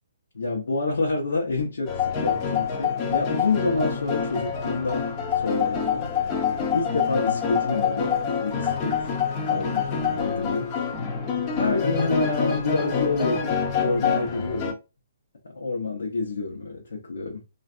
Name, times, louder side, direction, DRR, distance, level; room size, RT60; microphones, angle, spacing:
voice 1, 0.3-6.1 6.7-8.1 8.4-9.0 9.5-10.7 11.6-14.8 15.4-17.4, left 3 dB, 85° left, 0.9 m, -28 dB
sound 1, 1.9-14.7, left 6 dB, 25° left, 0.6 m, -26 dB
3.2 x 2.5 x 2.5 m
hypercardioid pair, 155°, 0 cm